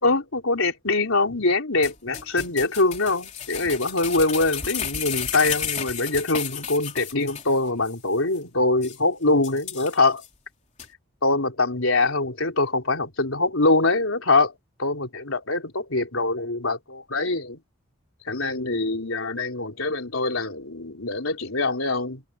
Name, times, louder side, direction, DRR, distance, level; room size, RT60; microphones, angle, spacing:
voice 1, 0.0-10.2 11.2-17.6 18.3-22.2, left 2 dB, 90° left, 3.8 m, -24 dB
sound 1, 1.8-7.6 7.8-7.9 8.4-8.5 8.8-9.0 9.4-10.3 10.8-10.9, left 8 dB, 35° left, 3.6 m, -32 dB
head